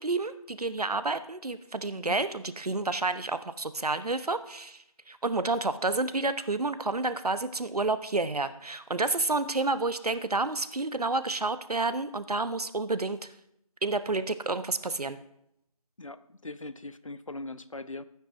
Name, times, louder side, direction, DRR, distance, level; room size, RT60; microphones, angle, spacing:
voice 1, 0.0-13.2 13.8-15.2, right 3 dB, 85° right, 12 dB, 0.9 m, -30 dB
voice 2, 16.0-18.0, left 2 dB, 60° left, 14 dB, 0.6 m, -40 dB
17.5 x 9.2 x 2.6 m, 0.77 s
figure-of-eight pair, 180°, 19 cm